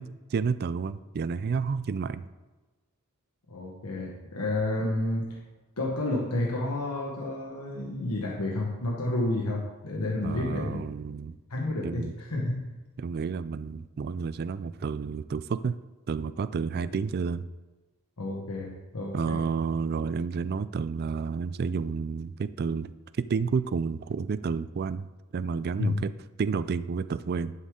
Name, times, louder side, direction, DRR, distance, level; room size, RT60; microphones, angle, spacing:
voice 1, 0.0-2.3 10.2-11.4 11.8-12.1 13.0-15.8 16.1-17.5 19.1-25.1 25.3-26.1 26.4-27.5, right 5 dB, 45° right, 15 dB, 0.3 m, -30 dB
voice 2, 3.5-5.4 5.8-10.8 11.5-12.7 18.2-19.5 25.8-26.0, left 2 dB, 90° left, -2 dB, 1.3 m, -30 dB
11.0 x 6.4 x 3.7 m, 1.2 s
head